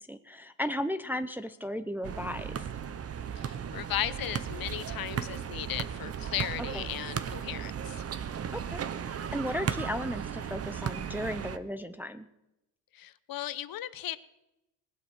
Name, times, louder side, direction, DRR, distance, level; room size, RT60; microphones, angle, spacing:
voice 1, 0.0-2.6 6.7-6.9 8.5-12.3, left 1 dB, 5° right, 9 dB, 0.6 m, -35 dB
sound 1, 2.0-11.6, right 8 dB, 30° right, 0.8 m, -36 dB
voice 2, 3.4-8.0 12.9-14.2, left 12 dB, 50° left, 15 dB, 0.8 m, -36 dB
19.0 x 8.0 x 6.1 m, 0.92 s
cardioid pair, 105°, 46 cm